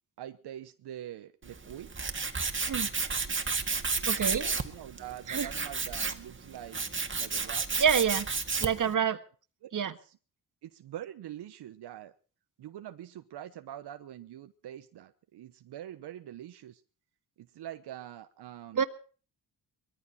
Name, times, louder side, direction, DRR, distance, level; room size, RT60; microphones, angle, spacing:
voice 1, 0.2-1.9 4.3-6.9 7.2-7.7 8.8-8.9 9.6-9.7 10.0-10.2 10.6-12.2 12.6-16.8 17.4-18.8, right 11 dB, 85° right, 9 dB, 1.1 m, -44 dB
Tools, 1.4-8.9, right 4 dB, 30° right, 1.9 m, -32 dB
voice 2, 4.1-4.5 5.3-5.5 7.8-8.3 8.6-9.2 9.7-9.9 18.7-18.8, right 7 dB, 50° right, 10 dB, 1.6 m, -27 dB
21.0 x 14.5 x 4.3 m, 0.40 s
cardioid pair, 85°, 39 cm